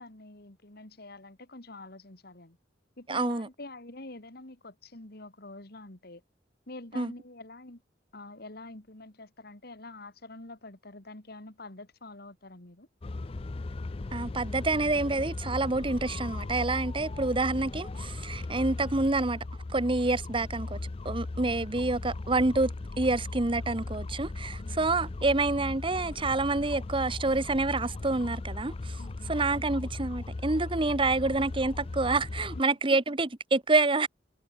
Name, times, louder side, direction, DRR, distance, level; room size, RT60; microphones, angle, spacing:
voice 1, 0.0-2.6 3.0-6.2 6.7-7.8 8.1-12.9 24.6-24.8 29.0-29.4 32.6-33.0, left 2 dB, 60° left, 3.0 m, -46 dB
voice 2, 3.1-3.5 6.9-7.1 14.1-19.4 19.7-20.8 21.0-29.0 29.2-34.1, right 3 dB, 30° right, 1.1 m, -28 dB
sound 1, 13.0-32.6, left 2 dB, 30° left, 0.5 m, -37 dB
head